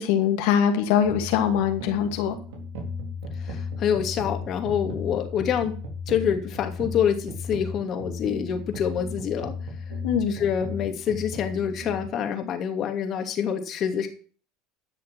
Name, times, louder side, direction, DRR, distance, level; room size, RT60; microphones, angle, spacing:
voice 1, 0.0-2.4 10.0-10.3, left 8 dB, 75° left, 5 dB, 2.5 m, -22 dB
sound 1, 1.0-12.1, left 3 dB, 80° right, 3.9 m, -35 dB
voice 2, 3.4-5.7 6.1-9.5 10.3-14.1, left 8 dB, 45° left, 5 dB, 2.6 m, -26 dB
12.0 x 6.5 x 6.2 m, 0.41 s
supercardioid pair, 100°, 0 cm